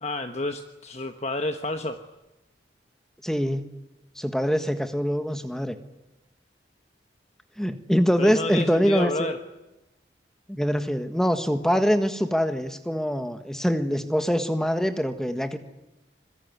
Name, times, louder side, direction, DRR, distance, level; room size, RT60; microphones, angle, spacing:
voice 1, 0.0-2.0 8.2-9.4, left 2 dB, 35° left, 7 dB, 1.2 m, -30 dB
voice 2, 3.2-3.6 4.2-5.7 7.6-9.3 10.5-15.6, equal, 5° left, 8 dB, 1.5 m, -24 dB
26.0 x 21.5 x 9.5 m, 0.99 s
head